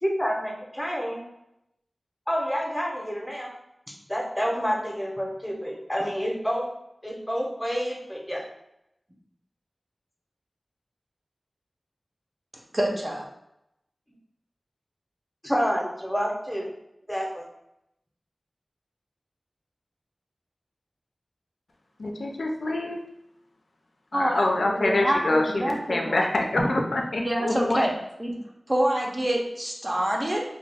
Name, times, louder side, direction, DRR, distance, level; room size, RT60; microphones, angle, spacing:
voice 1, 0.0-1.2 2.3-3.5 3.9-6.7 7.0-8.4 15.4-16.7 17.1-17.4, equal, 5° left, -1 dB, 0.7 m, -28 dB
voice 2, 12.7-13.3 24.1-26.2 27.2-27.9 28.2-28.3 28.7-30.4, right 1 dB, 30° right, 0 dB, 0.5 m, -26 dB
voice 3, 22.0-23.0 24.1-27.9, left 2 dB, 85° left, 1 dB, 0.4 m, -26 dB
2.3 x 2.2 x 3.3 m, 0.82 s
wide cardioid pair, 75°, 0 cm